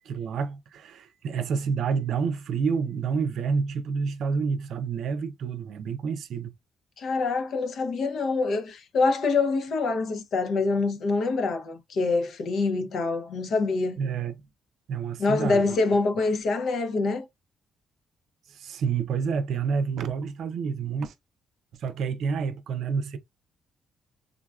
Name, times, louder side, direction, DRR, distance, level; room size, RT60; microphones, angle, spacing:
voice 1, 0.0-6.5 14.0-14.4 14.9-15.8 18.5-21.1 21.8-23.2, right 5 dB, 75° right, 0.5 m, -29 dB
voice 2, 7.0-14.0 15.2-17.3, left 3 dB, 65° left, 0.7 m, -25 dB
3.7 x 2.3 x 2.3 m
cardioid pair, 90°, 0 cm